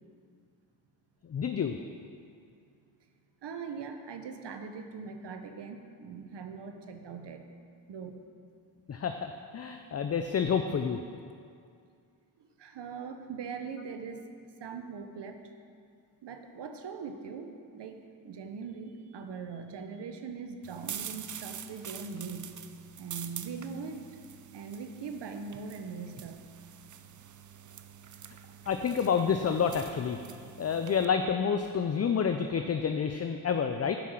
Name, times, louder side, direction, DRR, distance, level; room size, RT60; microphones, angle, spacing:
voice 1, 1.3-1.8 8.9-11.0 28.7-30.2 30.6-34.0, left 6 dB, 35° left, 7 dB, 0.5 m, -29 dB
voice 2, 3.4-7.5 7.9-8.2 12.6-14.2 14.6-15.4 16.2-22.6 23.0-24.0 24.5-26.5, right 5 dB, 65° right, 6 dB, 1.1 m, -41 dB
sound 1, 20.6-31.1, right 9 dB, 45° right, 0.6 m, -46 dB
10.0 x 5.6 x 6.4 m, 2.3 s
cardioid pair, 60°, 45 cm